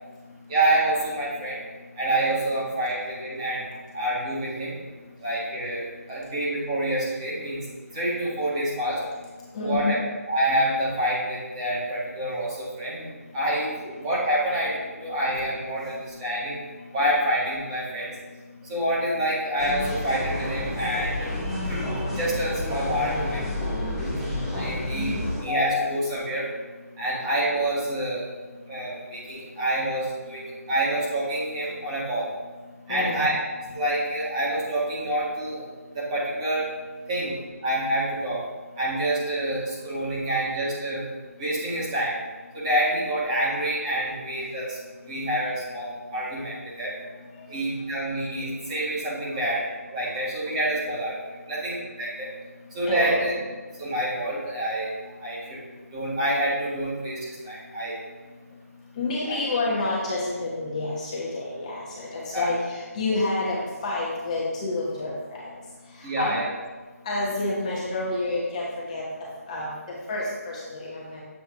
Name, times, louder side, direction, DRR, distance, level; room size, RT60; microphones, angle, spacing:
voice 1, 0.5-1.6 2.0-4.7 5.2-7.6 7.9-9.0 9.6-10.0 10.3-13.7 14.0-14.7 15.0-16.6 16.9-18.1 18.7-21.3 21.6-23.4 24.5-25.2 25.4-26.5 27.0-28.2 28.7-32.2 32.9-33.3 33.7-35.7 35.9-36.7 37.1-37.3 37.6-38.4 38.7-41.0 41.4-42.1 42.5-46.9 47.5-49.6 49.9-52.3 52.7-53.3 53.8-54.9 55.2-55.6 55.9-58.0 59.3-59.4 62.3-62.5 66.0-66.5, right 1 dB, 20° right, -7 dB, 1.6 m, -27 dB
voice 2, 9.5-10.0 32.9-33.3 47.4-47.5 52.8-53.2 59.0-65.1 65.9-66.4 67.0-69.0 69.5-69.7 70.1-71.2, left 2 dB, 25° left, -6 dB, 1.2 m, -28 dB
sound 1, 19.6-25.4, left 1 dB, 5° right, 0.8 m, -30 dB
7.6 x 4.1 x 3.7 m, 1.3 s
figure-of-eight pair, 160°, 9 cm